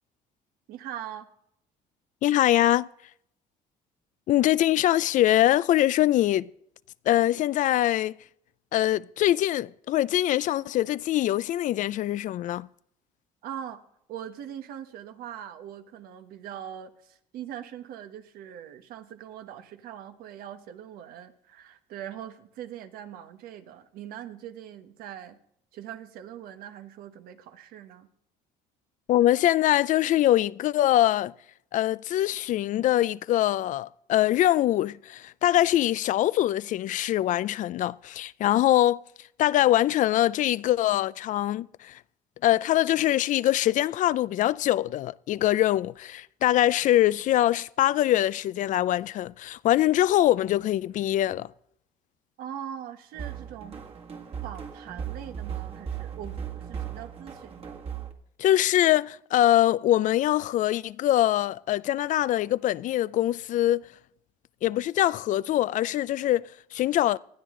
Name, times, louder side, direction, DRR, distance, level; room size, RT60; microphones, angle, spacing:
voice 1, 0.7-1.3 13.4-13.8 14.1-25.4 25.7-28.1 52.4-53.8 54.4-57.8, right 10 dB, 75° right, 1.3 m, -41 dB
voice 2, 2.2-2.9 4.3-6.5 7.1-8.1 8.7-12.7 29.1-31.3 31.7-39.0 39.4-42.0 42.4-51.5 58.4-63.9 64.6-67.2, left 13 dB, 55° left, 0.4 m, -23 dB
sound 1, 53.1-58.1, right 8 dB, 40° right, 2.0 m, -37 dB
20.0 x 12.5 x 3.8 m
cardioid pair, 105°, 15 cm